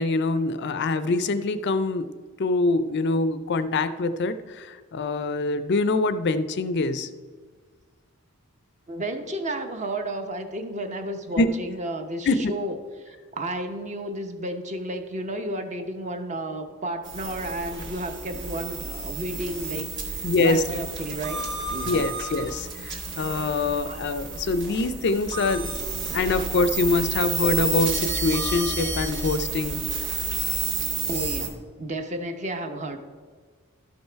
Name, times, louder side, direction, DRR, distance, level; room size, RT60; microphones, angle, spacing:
voice 1, 0.0-2.1 2.4-7.1 11.4-11.6 12.3-12.5 20.2-20.6 21.9-25.7 26.1-29.8, left 3 dB, 50° left, 12 dB, 0.4 m, -24 dB
voice 2, 8.9-22.1 23.8-24.0 31.1-33.0, right 1 dB, 35° right, 7 dB, 0.8 m, -32 dB
sound 1, 17.0-31.5, right 3 dB, 55° right, 1.7 m, -31 dB
12.0 x 5.5 x 4.5 m, 1.5 s
head